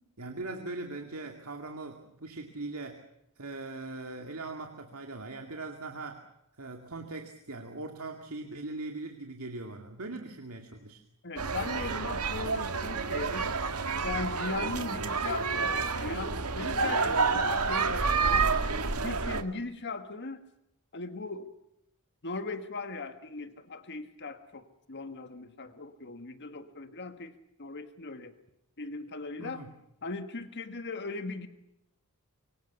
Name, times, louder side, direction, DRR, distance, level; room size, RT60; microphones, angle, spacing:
voice 1, 0.2-3.0 3.4-6.2 6.6-11.0 29.4-29.7, right 2 dB, 70° right, 4 dB, 2.5 m, -40 dB
voice 2, 11.2-13.5 14.0-18.5 19.0-20.4 20.9-21.5 22.2-28.3 28.8-29.6 30.0-31.5, left 3 dB, 55° left, 9 dB, 1.6 m, -39 dB
sound 1, 11.4-19.4, right 4 dB, 90° right, 1.9 m, -29 dB
25.5 x 24.5 x 7.0 m, 0.81 s
head